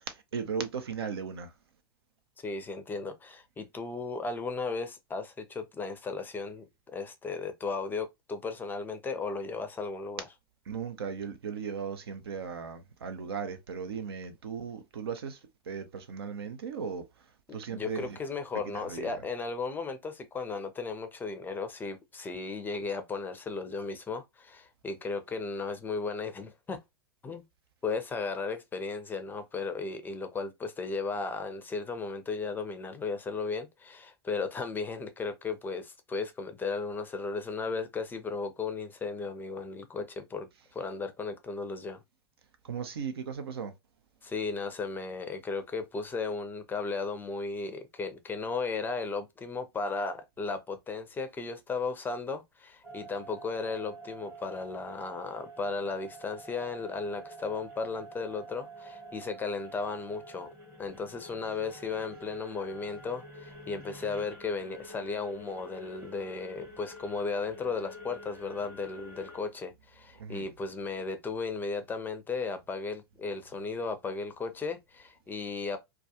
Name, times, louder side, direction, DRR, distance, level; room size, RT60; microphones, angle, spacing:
voice 1, 0.1-1.5 10.7-15.4 15.7-17.1 17.5-18.2 18.7-19.2 42.6-43.7 70.2-70.5, right 6 dB, 75° right, 0.5 m, -37 dB
voice 2, 2.4-10.2 17.5-26.8 27.2-27.4 27.8-42.0 44.2-60.5 60.8-75.8, left 4 dB, 15° left, 0.4 m, -35 dB
sound 1, 52.8-69.4, right 1 dB, 20° right, 0.9 m, -48 dB
2.3 x 2.2 x 2.7 m
hypercardioid pair, 95°, 13 cm